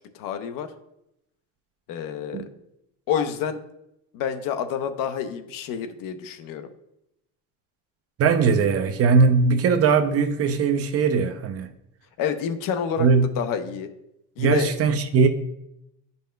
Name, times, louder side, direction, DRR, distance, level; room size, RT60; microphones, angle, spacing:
voice 1, 0.1-0.7 1.9-2.5 3.1-3.6 4.1-6.7 12.2-13.1 13.4-13.9 14.4-14.7, left 8 dB, 60° left, 0.8 m, -28 dB
voice 2, 8.2-11.7 13.0-13.3 14.4-15.3, right 5 dB, 40° right, 0.7 m, -20 dB
10.0 x 5.5 x 2.2 m
cardioid pair, 135°, 38 cm